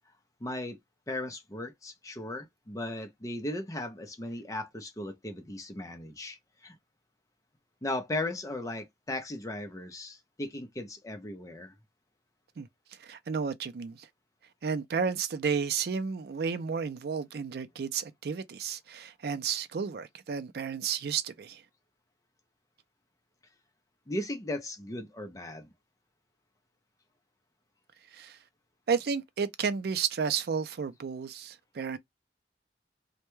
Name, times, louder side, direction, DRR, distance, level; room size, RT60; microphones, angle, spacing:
voice 1, 0.4-0.8 1.1-6.8 7.8-11.7 24.1-25.7, left 1 dB, 20° left, 0.5 m, -37 dB
voice 2, 13.0-14.1 14.6-21.6 28.1-28.4 28.9-32.0, right 6 dB, 60° right, 0.4 m, -32 dB
2.2 x 2.1 x 3.0 m
head